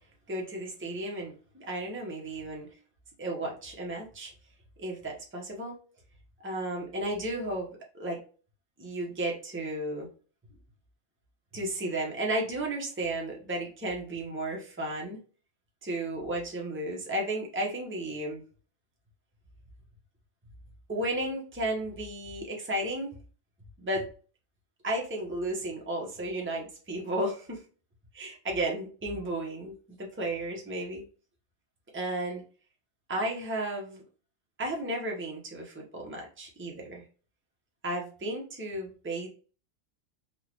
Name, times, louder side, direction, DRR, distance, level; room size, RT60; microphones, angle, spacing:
voice 1, 0.3-2.7 3.2-4.3 4.8-5.7 6.4-7.7 7.9-8.2 8.8-10.1 11.5-15.2 15.8-18.4 20.9-23.1 23.8-24.1 24.8-27.6 28.1-31.0 31.9-32.4 33.1-34.0 34.6-37.0 37.8-39.3, right 1 dB, 10° right, -1 dB, 0.8 m, -33 dB
4.1 x 2.4 x 3.0 m, 0.38 s
omnidirectional pair, 1.4 m